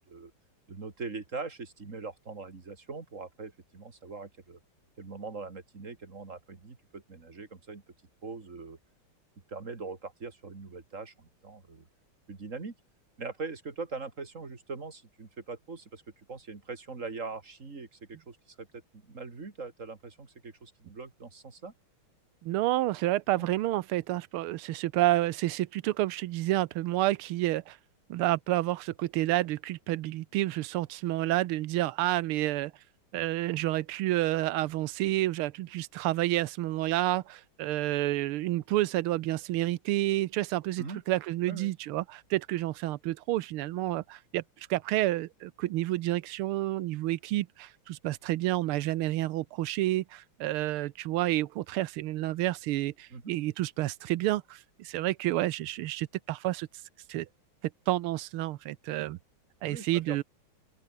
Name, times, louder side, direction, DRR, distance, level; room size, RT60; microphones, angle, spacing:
voice 1, 0.7-4.6 5.0-7.8 8.2-8.8 9.5-11.9 12.3-12.7 13.2-16.0 16.3-18.7 18.9-21.7 23.4-23.5 40.8-41.0 41.5-41.7 53.1-53.3 59.6-60.2, right 4 dB, 35° right, 2.9 m, -41 dB
voice 2, 22.4-27.8 28.1-32.7 33.1-56.7 57.1-57.3 57.9-59.2 59.6-60.2, right 16 dB, 90° right, 1.6 m, -29 dB
open air
omnidirectional pair, 2.4 m